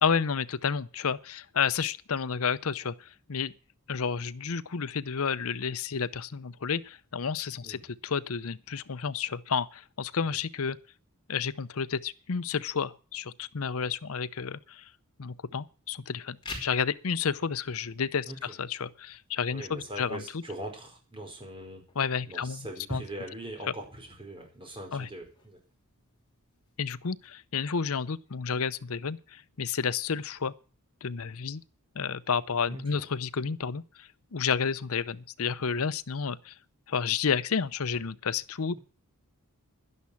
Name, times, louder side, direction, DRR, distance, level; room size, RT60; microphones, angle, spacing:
voice 1, 0.0-3.5 3.9-10.8 11.3-14.9 15.2-20.4 22.0-23.0 24.9-25.1 26.8-30.5 31.0-31.6 31.9-36.5 36.9-38.8, left 6 dB, 65° left, 0.7 m, -31 dB
sound 1, 16.3-27.3, left 3 dB, 20° left, 5.1 m, -52 dB
voice 2, 18.2-18.6 19.5-21.9 22.3-25.6 32.7-33.1, right 1 dB, 25° right, 4.9 m, -41 dB
12.0 x 11.0 x 7.1 m
head